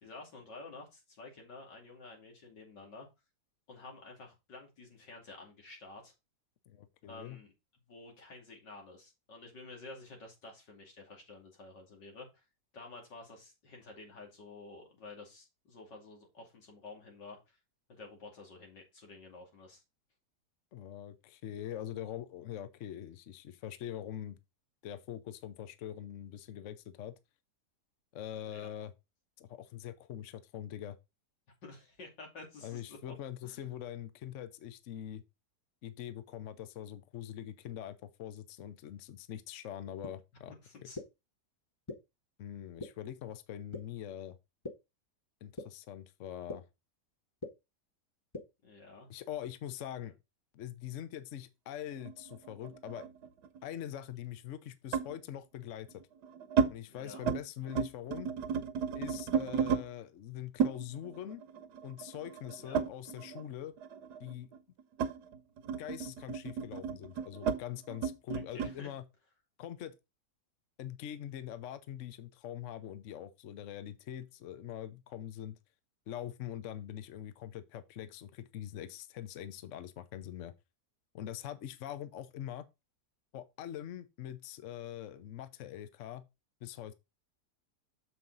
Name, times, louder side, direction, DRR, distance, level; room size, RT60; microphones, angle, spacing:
voice 1, 0.0-3.1 3.7-6.1 7.1-7.5 7.9-12.4 12.7-17.6 17.9-19.8 28.4-28.6 31.6-33.1 33.4-33.7 40.5-41.0 48.6-49.1 50.0-50.1 56.9-57.2 62.6-62.8 68.3-68.9, left 3 dB, 90° left, 3.1 m, -51 dB
voice 2, 6.7-7.4 20.7-24.4 24.8-27.1 28.1-28.9 29.4-31.0 32.6-35.2 35.8-40.5 40.8-40.9 42.4-44.4 45.4-46.6 49.1-50.1 50.5-53.0 53.6-56.0 56.7-58.3 58.9-61.4 61.8-63.7 64.2-64.5 65.8-69.0 69.6-69.9 70.8-75.6 76.1-80.5 81.1-82.6 83.3-86.2 86.6-86.9, left 11 dB, 60° left, 0.9 m, -43 dB
sound 1, 40.0-40.1 40.9-41.0 41.9-42.0 42.8-42.9 43.7-43.8 44.6-44.7 45.6-45.7 46.5-46.6 47.4-47.5 48.3-48.4, left 2 dB, 20° left, 0.9 m, -39 dB
sound 2, 52.1-53.6 54.9-55.2 55.9-56.7 57.1-57.4 57.7-59.8 60.6-63.5 63.8-68.8, right 6 dB, 75° right, 1.4 m, -34 dB
7.2 x 5.7 x 3.9 m
omnidirectional pair, 1.8 m